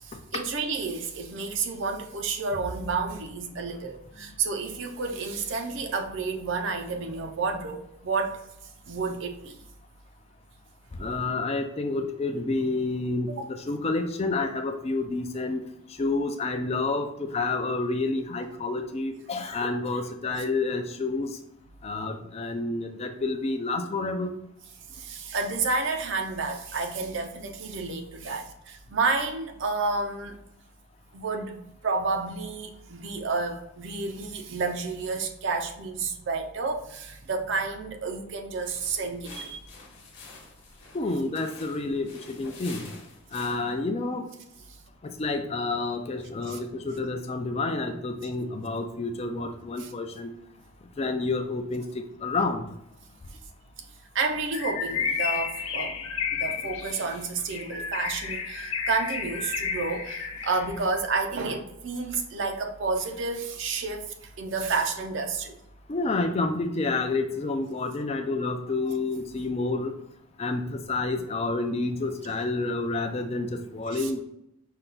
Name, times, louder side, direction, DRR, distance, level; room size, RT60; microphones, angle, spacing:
voice 1, 0.0-8.4 8.9-9.6 13.3-13.4 24.9-30.4 31.1-39.6 46.5-46.6 49.8-49.9 54.1-56.0 56.3-65.6 68.8-68.9 73.9-74.1, right 4 dB, 55° right, 3 dB, 0.5 m, -30 dB
voice 2, 11.0-15.6 16.0-21.4 21.8-24.3 40.9-42.8 43.3-44.3 45.0-50.3 51.0-52.6 65.9-69.9 70.4-74.2, left 3 dB, 30° left, 6 dB, 0.3 m, -29 dB
sound 1, 38.6-43.8, left 3 dB, 50° left, 1.0 m, -48 dB
Bird, 54.5-60.8, left 6 dB, 70° left, 0.6 m, -32 dB
5.4 x 2.3 x 3.8 m, 0.82 s
head